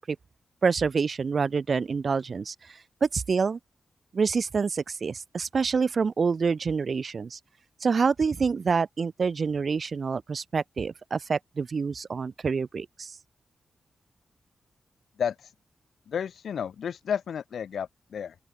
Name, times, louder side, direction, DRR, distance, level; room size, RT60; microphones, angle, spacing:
voice 1, 0.6-3.6 4.1-7.4 7.8-13.1, right 5 dB, 45° right, 2.0 m, -27 dB
voice 2, 15.2-15.5 16.1-18.4, left 8 dB, 85° left, 0.9 m, -32 dB
open air
wide cardioid pair, 165°, 0 cm